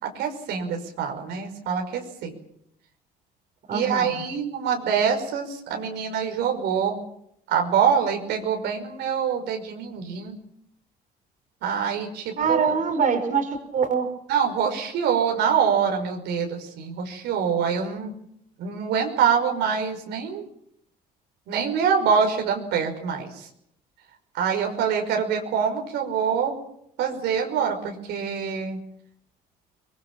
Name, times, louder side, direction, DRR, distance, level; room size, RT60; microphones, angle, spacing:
voice 1, 0.0-2.3 3.7-7.0 7.5-10.4 11.6-12.8 14.3-18.1 18.6-20.4 21.5-23.5 24.3-26.5 27.0-28.8, right 7 dB, 80° right, 3 dB, 5.5 m, -25 dB
voice 2, 3.7-4.2 12.4-14.1, right 5 dB, 50° right, 6 dB, 4.9 m, -24 dB
24.5 x 22.0 x 7.5 m, 0.72 s
cardioid pair, 110°, 17 cm